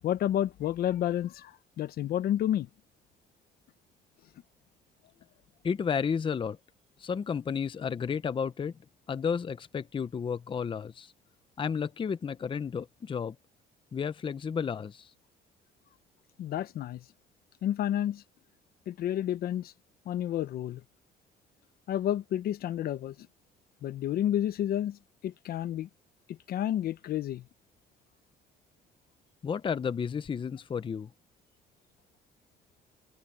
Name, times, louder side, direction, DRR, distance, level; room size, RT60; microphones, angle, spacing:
voice 1, 0.0-2.7 16.4-17.0 17.6-18.2 18.9-19.7 20.1-20.8 21.9-23.1 23.8-25.0 25.2-25.9 26.3-27.4, left 11 dB, 65° left, 1.1 m, -30 dB
voice 2, 5.6-6.6 7.0-8.7 9.1-11.1 11.6-13.3 13.9-15.1 29.4-31.1, left 6 dB, 30° left, 0.8 m, -32 dB
cardioid pair, 110°, 17 cm